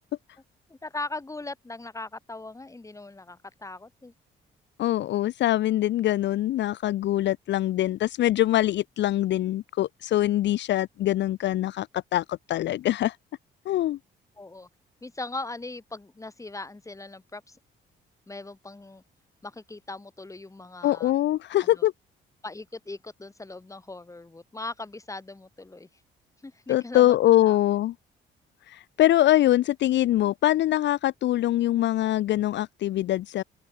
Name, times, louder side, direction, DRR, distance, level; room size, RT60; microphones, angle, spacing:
voice 1, 0.7-4.1 14.4-14.7 15.0-17.6 18.3-19.0 19.4-21.1 21.6-21.8 22.4-25.9 26.4-27.2 27.4-27.6, left 2 dB, 15° left, 1.8 m, -39 dB
voice 2, 4.8-13.2 13.7-14.0 20.8-21.9 26.7-27.9 28.7-33.4, left 14 dB, 65° left, 0.5 m, -23 dB
open air
cardioid pair, 90°, 20 cm